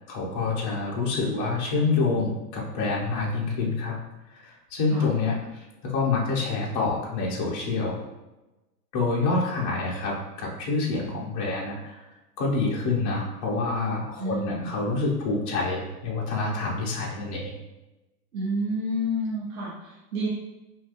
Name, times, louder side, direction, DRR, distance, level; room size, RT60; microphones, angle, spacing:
voice 1, 0.1-4.0 4.4-8.0 8.9-12.0 12.4-17.5, left 3 dB, 25° left, -4 dB, 0.3 m, -27 dB
voice 2, 14.2-14.7 18.3-20.3, equal, 60° right, -6 dB, 1.0 m, -29 dB
2.7 x 2.5 x 3.5 m, 1.0 s
hypercardioid pair, 125°, 50 cm